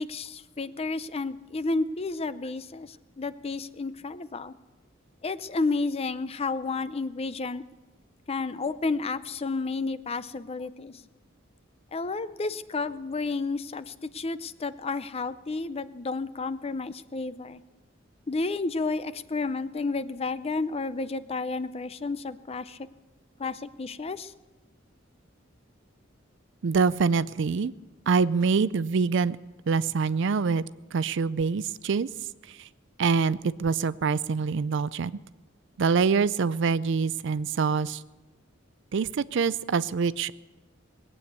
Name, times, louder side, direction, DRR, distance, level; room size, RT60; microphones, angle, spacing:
voice 1, 0.0-4.5 5.2-7.6 8.3-11.1 11.9-17.6 18.3-22.8 23.4-24.3, left 3 dB, 30° left, 14 dB, 0.5 m, -31 dB
voice 2, 26.6-27.7 28.1-29.4 29.7-30.6 30.9-32.1 33.0-35.2 35.8-38.0 38.9-40.3, right 5 dB, 65° right, 17 dB, 0.4 m, -25 dB
20.0 x 8.7 x 8.1 m, 1.1 s
head